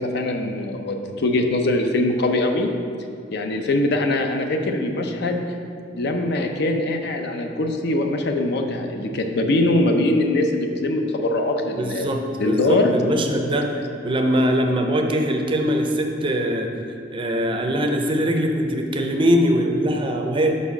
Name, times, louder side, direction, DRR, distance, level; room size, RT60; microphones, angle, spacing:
voice 1, 0.0-2.7 3.3-5.4 5.9-12.1 12.4-12.9 13.7-13.8, left 2 dB, 60° left, 4 dB, 0.5 m, -22 dB
voice 2, 11.8-13.7 14.0-16.7 17.1-20.5, equal, 30° right, 3 dB, 0.5 m, -22 dB
5.3 x 4.2 x 5.8 m, 2.5 s
head